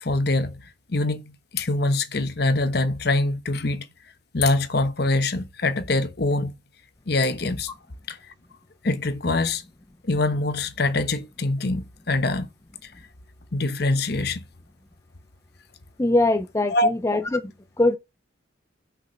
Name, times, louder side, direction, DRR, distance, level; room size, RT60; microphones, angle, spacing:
voice 1, 0.0-0.6 0.9-3.9 4.3-6.5 7.1-7.7 8.1-8.2 8.8-9.6 10.0-12.5 12.8-12.9 13.5-14.4 16.7-16.9, left 2 dB, 55° left, 1.0 m, -24 dB
voice 2, 16.0-17.4 17.8-18.0, left 2 dB, 15° left, 0.4 m, -21 dB
6.5 x 5.1 x 5.5 m
head